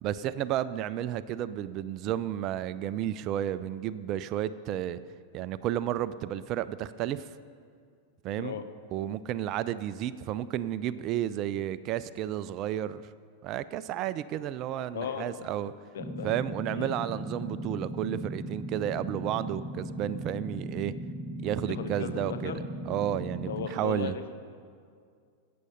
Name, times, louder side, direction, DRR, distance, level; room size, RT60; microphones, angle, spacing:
voice 1, 0.0-5.0 5.3-7.3 8.2-8.5 8.9-13.1 13.4-15.7 16.2-20.9 21.4-24.1, right 11 dB, 40° right, 15 dB, 0.4 m, -32 dB
voice 2, 14.9-15.5 15.9-16.3 16.7-17.0 21.6-22.6 23.5-24.4, left 7 dB, 60° left, 8 dB, 0.9 m, -36 dB
sound 1, 16.0-23.7, right 1 dB, ahead, 0.9 m, -38 dB
16.0 x 8.5 x 5.4 m, 2.2 s
figure-of-eight pair, 90°, 0 cm